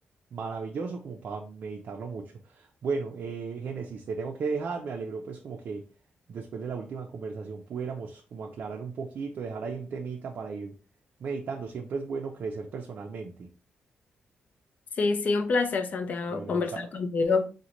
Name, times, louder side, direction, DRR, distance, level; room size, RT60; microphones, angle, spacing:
voice 1, 0.3-5.8 6.3-10.8 11.2-13.5 16.3-16.9, right 5 dB, 55° right, 0.4 m, -35 dB
voice 2, 15.0-17.5, left 4 dB, 50° left, 0.4 m, -27 dB
3.8 x 2.1 x 2.9 m
wide cardioid pair, 140°, 3 cm